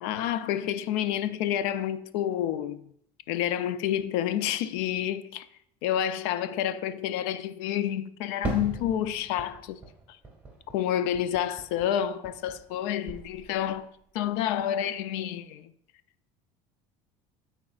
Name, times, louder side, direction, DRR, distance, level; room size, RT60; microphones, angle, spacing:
voice 1, 0.0-2.9 3.3-5.5 5.8-9.8 10.7-15.7, left 10 dB, 80° left, 0.5 m, -29 dB
Fireworks, 8.4-12.8 13.1-13.9, right 3 dB, 10° right, 2.1 m, -39 dB
13.5 x 4.5 x 2.4 m
supercardioid pair, 95°, 14 cm